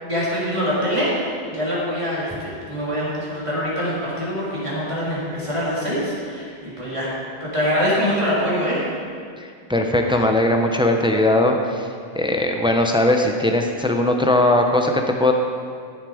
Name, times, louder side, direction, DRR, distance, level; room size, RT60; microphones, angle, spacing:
voice 1, 0.0-7.1 7.4-8.9, equal, 25° right, -8 dB, 3.5 m, -24 dB
voice 2, 9.4-11.9 12.1-15.3, left 1 dB, 5° right, 3 dB, 0.6 m, -19 dB
14.0 x 7.5 x 5.0 m, 2.2 s
omnidirectional pair, 1.2 m